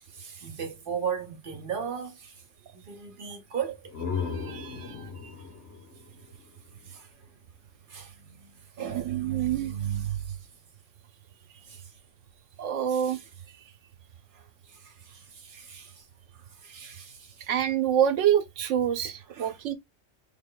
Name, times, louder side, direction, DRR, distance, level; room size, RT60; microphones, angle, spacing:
voice 1, 0.0-2.3 2.7-3.9 4.6-5.0 6.8-7.1 7.9-8.5 8.8-10.4 11.7-11.8 12.9-13.2 14.3-14.4 14.7-16.0 16.6-17.5 19.3-19.5, right 8 dB, 50° right, 1.1 m, -36 dB
sound 1, 3.6-7.3, left 5 dB, 65° left, 1.4 m, -37 dB
voice 2, 4.3-5.3 8.9-9.7 12.6-13.2 17.5-19.7, right 10 dB, 80° right, 1.0 m, -27 dB
3.6 x 2.1 x 3.7 m
omnidirectional pair, 1.3 m